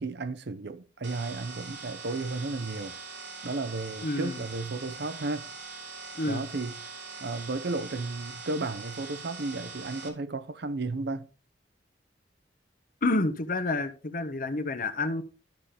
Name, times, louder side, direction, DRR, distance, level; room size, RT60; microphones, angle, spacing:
voice 1, 0.0-3.0 3.4-5.5 6.2-6.8 7.2-11.3, right 3 dB, 65° right, 0.7 m, -33 dB
sound 1, 1.0-10.1, right 4 dB, 85° right, 1.7 m, -42 dB
voice 2, 4.0-4.4 6.1-6.4 13.0-15.2, left 2 dB, 50° left, 0.9 m, -29 dB
12.0 x 5.7 x 3.4 m
head